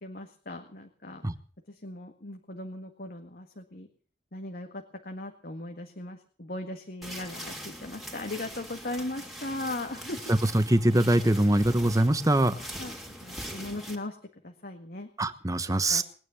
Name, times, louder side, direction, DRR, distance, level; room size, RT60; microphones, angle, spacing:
voice 1, 0.0-1.2 1.8-3.9 4.3-10.3 12.8-14.2 14.4-15.1 15.9-16.0, left 2 dB, 55° left, 4 dB, 1.8 m, -38 dB
sound 1, 7.0-14.0, equal, ahead, 3.0 m, -42 dB
voice 2, 10.3-12.5 15.2-16.0, right 1 dB, 20° right, 11 dB, 1.1 m, -23 dB
21.0 x 9.9 x 7.0 m, 0.43 s
head